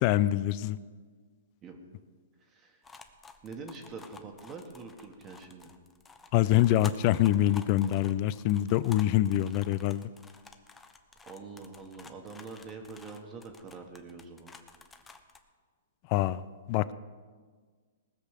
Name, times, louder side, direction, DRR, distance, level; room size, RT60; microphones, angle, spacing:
voice 1, 0.0-0.8 6.3-10.1 16.1-16.4 16.7-16.9, left 13 dB, 40° left, 17 dB, 0.5 m, -25 dB
voice 2, 2.4-2.8 3.4-5.7 11.2-14.5, right 4 dB, 25° right, 3 dB, 1.5 m, -45 dB
sound 1, 2.8-15.4, left 4 dB, 15° left, 0.9 m, -52 dB
19.0 x 6.6 x 6.7 m, 1.5 s
hypercardioid pair, 140°, 0 cm